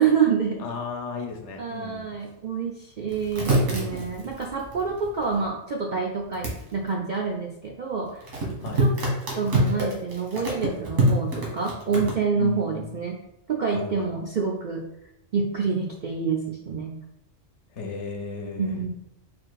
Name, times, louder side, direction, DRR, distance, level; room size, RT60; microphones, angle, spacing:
voice 1, 0.0-0.6 1.6-8.3 8.8-8.9 9.4-13.2 13.5-14.8 15.3-16.9 18.6-18.9, right 5 dB, 60° right, -1 dB, 0.5 m, -27 dB
voice 2, 0.6-2.3 8.6-8.8 12.4-13.0 13.7-14.1 17.7-18.8, left 5 dB, 70° left, 3 dB, 1.0 m, -35 dB
sound 1, 3.1-5.4 6.3-6.6 8.2-12.1, right 1 dB, 90° right, 1.7 m, -25 dB
4.3 x 2.5 x 4.6 m, 0.82 s
omnidirectional pair, 1.3 m